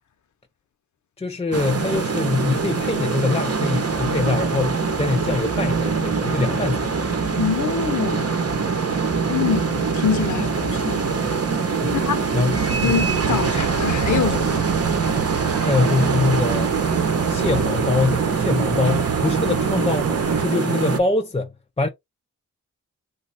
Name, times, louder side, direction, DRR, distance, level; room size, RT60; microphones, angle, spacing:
voice 1, 1.2-6.9 8.6-8.8 11.8-12.0 12.3-13.0 13.3-13.4 15.6-16.7 17.3-21.9, left 3 dB, 20° left, 0.5 m, -24 dB
sound 1, 1.5-21.0, right 5 dB, 45° right, 0.8 m, -23 dB
sound 2, 3.5-16.6, left 1 dB, 5° left, 0.9 m, -39 dB
voice 2, 7.4-8.5 9.3-11.0 11.9-12.3 12.8-14.7, left 7 dB, 60° left, 0.7 m, -25 dB
sound 3, 12.6-20.5, right 9 dB, 75° right, 0.5 m, -28 dB
3.1 x 2.2 x 4.0 m
cardioid pair, 60°, 33 cm